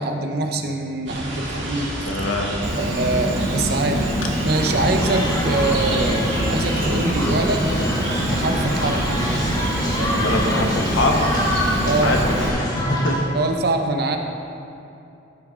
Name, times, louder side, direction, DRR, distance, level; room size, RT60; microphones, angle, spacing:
voice 1, 0.0-1.9 2.7-4.2 4.4-7.7 8.3-9.0 11.8-12.1 13.3-14.2, right 2 dB, 55° right, 5 dB, 0.7 m, -24 dB
sound 1, 1.1-12.6, right 1 dB, 75° right, 1.9 m, -29 dB
voice 2, 2.1-2.5 10.2-11.2 12.0-12.2 12.6-13.2, left 2 dB, 85° left, 1 dB, 1.2 m, -23 dB
Insect, 2.6-12.5, equal, 35° right, 1.1 m, -25 dB
sound 2, 4.5-13.2, left 1 dB, 20° left, 1.1 m, -27 dB
13.0 x 6.4 x 3.7 m, 2.8 s
head